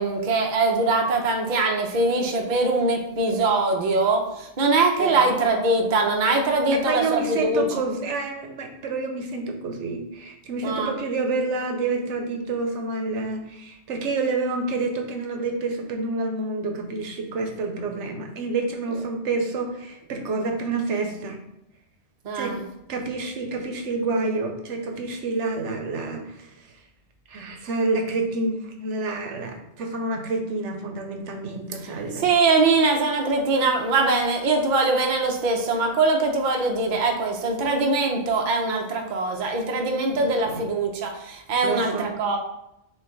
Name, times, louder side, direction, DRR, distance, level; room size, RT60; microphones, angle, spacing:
voice 1, 0.0-7.6 10.6-10.9 22.2-22.6 32.2-42.4, right 3 dB, 50° right, 2 dB, 0.7 m, -22 dB
voice 2, 6.8-21.4 22.3-22.6 22.9-26.7 27.3-32.3 40.1-40.7 41.6-42.2, right 3 dB, 80° right, 4 dB, 1.0 m, -28 dB
6.3 x 2.2 x 3.8 m, 0.83 s
omnidirectional pair, 1.2 m